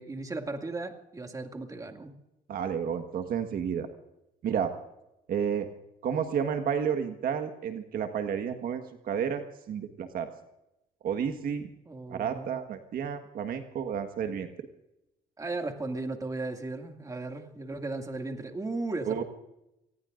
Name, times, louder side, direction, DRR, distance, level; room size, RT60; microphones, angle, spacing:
voice 1, 0.0-2.1 11.9-12.5 15.4-19.2, right 2 dB, 20° right, 3 dB, 2.2 m, -36 dB
voice 2, 2.5-3.9 4.4-4.7 5.3-5.7 6.0-10.3 11.0-11.7 12.1-14.5 19.0-19.2, right 7 dB, 60° right, 7 dB, 1.5 m, -31 dB
27.5 x 20.0 x 2.6 m, 0.89 s
cardioid pair, 110°, 17 cm